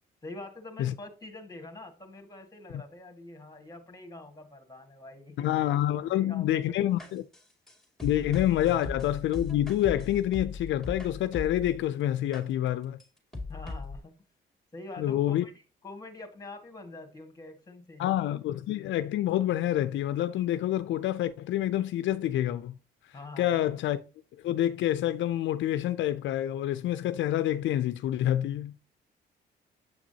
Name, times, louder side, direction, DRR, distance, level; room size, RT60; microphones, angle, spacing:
voice 1, 0.2-5.5 6.1-6.8 7.0-7.2 13.5-14.1 14.7-18.1 23.1-23.7, left 2 dB, 20° left, 1.8 m, -45 dB
voice 2, 5.4-7.2 8.0-13.0 15.0-15.4 18.0-22.8 23.4-24.0 24.4-28.7, left 12 dB, 70° left, 0.4 m, -27 dB
sound 1, 7.0-11.8 12.3-12.4 13.0-13.1 13.3-14.0, left 3 dB, ahead, 2.4 m, -38 dB
7.5 x 6.0 x 2.8 m
cardioid pair, 90°, 20 cm